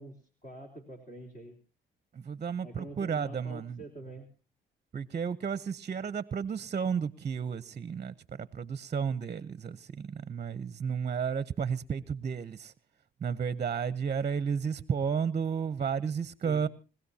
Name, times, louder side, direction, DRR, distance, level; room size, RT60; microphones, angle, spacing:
voice 1, 0.0-1.6 2.6-4.3 16.4-16.7, right 1 dB, 40° left, 3.5 m, -46 dB
voice 2, 2.1-3.8 4.9-12.7 13.2-16.7, right 6 dB, 35° right, 0.7 m, -32 dB
27.0 x 16.5 x 2.8 m
cardioid pair, 90°, 20 cm